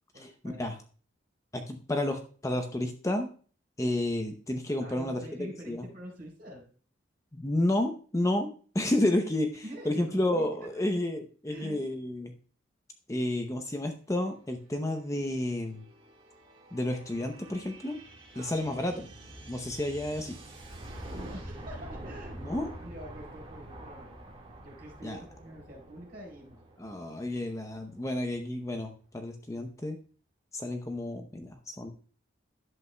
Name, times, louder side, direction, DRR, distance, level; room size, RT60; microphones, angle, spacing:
voice 1, 0.1-0.6 4.8-6.6 9.6-10.4 10.7-10.8 11.5-11.8 18.3-19.0 21.1-26.6, equal, 50° right, 0 dB, 3.9 m, -46 dB
voice 2, 1.5-3.3 3.8-5.2 5.7-5.8 7.3-8.5 8.7-12.3 13.1-15.8 16.7-18.0 18.4-19.1 19.5-20.4 22.4-22.7 25.0-25.2 26.8-30.0 30.5-31.9, left 1 dB, 15° left, 5 dB, 0.7 m, -31 dB
sound 1, 14.6-28.1, right 1 dB, 30° right, 1.8 m, -46 dB
11.0 x 8.0 x 2.2 m, 0.41 s
head